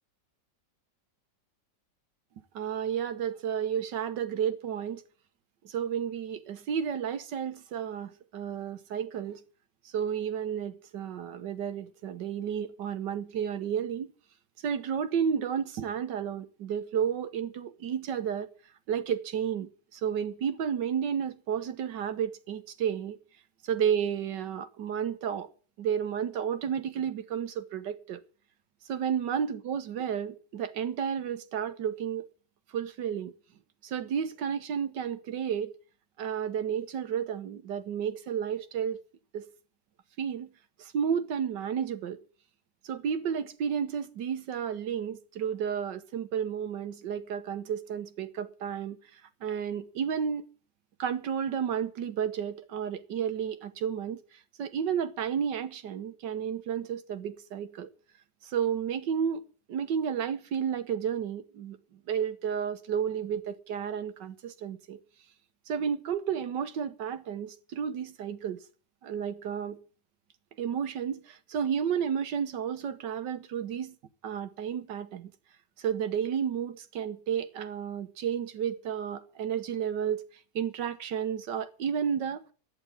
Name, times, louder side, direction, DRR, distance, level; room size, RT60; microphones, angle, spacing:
voice 1, 2.5-5.0 5.6-9.4 9.8-14.1 14.6-18.5 18.9-23.2 23.7-25.5 25.8-28.2 28.9-32.3 32.7-33.3 33.8-35.7 36.2-39.0 39.3-39.4 40.2-40.5 40.8-42.2 42.8-50.5 51.0-54.2 54.6-57.9 58.4-59.4 59.7-61.8 62.1-65.0 65.7-68.6 69.0-69.8 70.6-74.0 74.2-75.3 75.8-80.2 80.5-82.5, right 8 dB, 85° right, 1.7 m, -32 dB
11.5 x 9.6 x 8.6 m
omnidirectional pair, 1.8 m